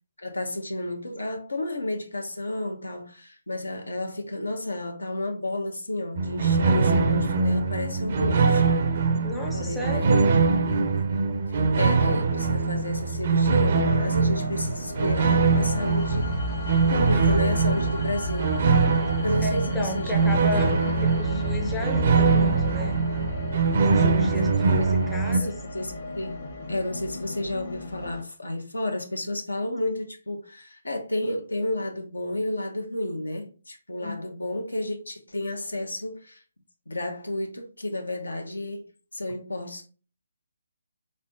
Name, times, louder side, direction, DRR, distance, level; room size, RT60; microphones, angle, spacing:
voice 1, 0.2-8.7 9.5-10.2 11.7-16.3 16.9-18.5 19.2-20.3 20.8-21.0 25.3-26.4 26.7-36.4 36.9-38.9 39.1-39.9, left 1 dB, 90° left, 1.0 m, -31 dB
sound 1, 6.2-25.4, right 4 dB, 45° right, 0.5 m, -23 dB
voice 2, 9.2-10.2 19.4-20.8 21.0-23.0 23.8-25.6 34.0-34.2 39.3-39.4, left 1 dB, 5° left, 0.5 m, -33 dB
sound 2, 13.7-28.2, equal, 50° left, 1.0 m, -34 dB
3.5 x 3.3 x 2.7 m
figure-of-eight pair, 150°, 0 cm